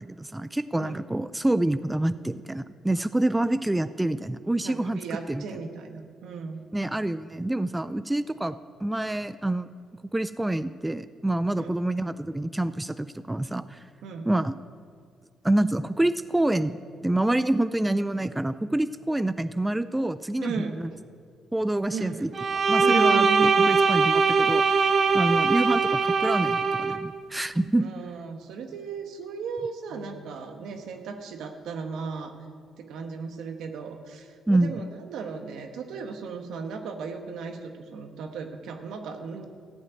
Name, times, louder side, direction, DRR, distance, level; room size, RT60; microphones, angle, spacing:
voice 1, 0.0-5.4 6.7-9.7 10.1-13.9 14.3-14.5 15.4-16.8 17.0-20.9 21.5-22.3 22.7-27.9 34.5-34.7, right 1 dB, 10° right, 13 dB, 0.3 m, -27 dB
voice 2, 4.6-6.6 11.5-11.7 14.0-14.3 20.4-21.0 21.9-22.3 22.8-23.8 27.8-32.3 32.8-39.4, right 5 dB, 80° right, 5 dB, 1.2 m, -35 dB
Bowed string instrument, 22.3-27.0, right 5 dB, 45° right, 0.7 m, -21 dB
14.5 x 5.4 x 9.1 m, 2.1 s
cardioid pair, 90°, 0 cm